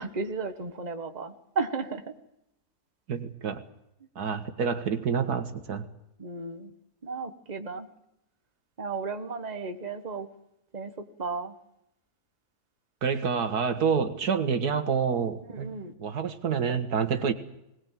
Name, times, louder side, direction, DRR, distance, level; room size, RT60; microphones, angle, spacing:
voice 1, 0.0-2.1 6.2-6.7 7.0-7.9 8.8-10.3 10.7-10.9 11.2-11.5 15.5-15.9, right 4 dB, 30° right, 6 dB, 1.5 m, -34 dB
voice 2, 3.1-3.6 4.2-5.9 13.0-17.3, right 6 dB, 90° right, 8 dB, 2.1 m, -28 dB
21.0 x 19.5 x 7.5 m, 0.82 s
omnidirectional pair, 1.6 m